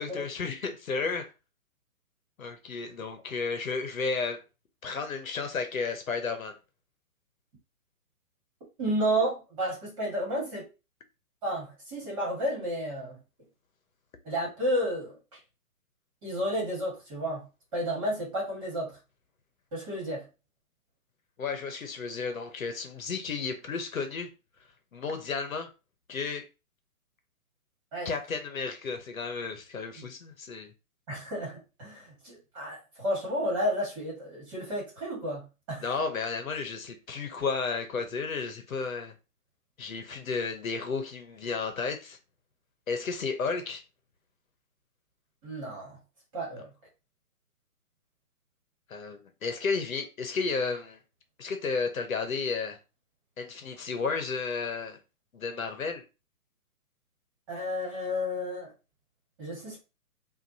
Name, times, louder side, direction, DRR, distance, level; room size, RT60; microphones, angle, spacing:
voice 1, 0.0-1.3 2.4-4.4 4.8-6.6 21.4-24.3 24.9-25.7 26.1-26.5 28.0-30.7 35.8-39.1 39.8-42.2 42.9-43.8 48.9-51.0 51.4-52.8 53.4-55.0 55.3-56.0, left 4 dB, 65° left, 1.0 m, -33 dB
voice 2, 8.8-10.7 11.4-13.2 14.2-15.2 16.2-17.4 17.7-18.9 19.7-20.2 27.9-28.1 30.0-30.1 31.1-35.4 35.7-35.9 45.4-46.0 46.3-46.7 57.5-58.7 59.4-59.8, equal, 20° right, 1.8 m, -31 dB
5.7 x 2.6 x 2.8 m
hypercardioid pair, 165°, 45 cm